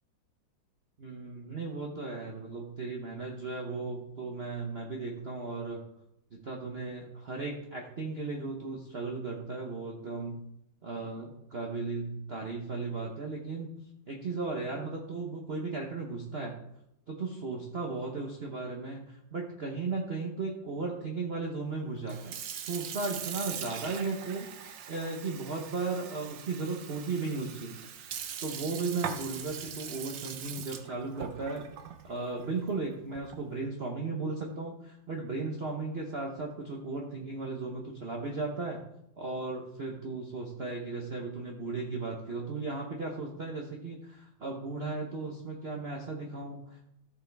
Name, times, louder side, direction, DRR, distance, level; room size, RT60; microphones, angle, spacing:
voice 1, 1.0-5.8 6.3-10.4 10.8-13.7 14.1-16.6 17.1-24.5 24.9-27.8 28.4-31.7 32.0-38.8 39.2-46.9, right 3 dB, 40° right, 0 dB, 1.0 m, -36 dB
Sink (filling or washing) / Fill (with liquid), 22.0-33.5, right 8 dB, 65° right, 1.4 m, -41 dB
14.0 x 7.2 x 3.5 m, 0.80 s
omnidirectional pair, 2.2 m